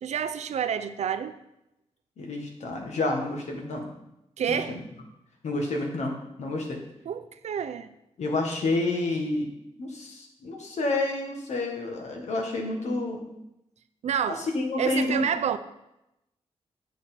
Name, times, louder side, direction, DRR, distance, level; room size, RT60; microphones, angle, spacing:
voice 1, 0.0-1.4 4.4-4.8 7.1-7.9 14.0-14.4 14.8-15.6, right 8 dB, 85° right, 11 dB, 0.5 m, -28 dB
voice 2, 2.2-3.9 4.5-4.8 5.4-6.8 8.2-9.5 9.8-13.2 14.3-15.3, left 2 dB, 90° left, 1 dB, 1.6 m, -29 dB
8.1 x 6.1 x 4.5 m, 0.88 s
wide cardioid pair, 180°, 11 cm